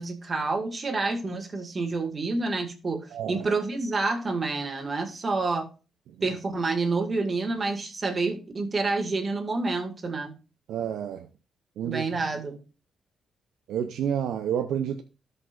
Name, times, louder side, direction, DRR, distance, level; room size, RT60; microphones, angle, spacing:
voice 1, 0.0-5.7 6.2-10.3 11.8-12.6, right 3 dB, 40° right, 2.0 m, -28 dB
voice 2, 3.1-3.5 10.7-11.3 11.8-12.1 13.7-15.0, right 9 dB, 85° right, 0.6 m, -29 dB
13.5 x 5.4 x 2.5 m
cardioid pair, 80°, 0 cm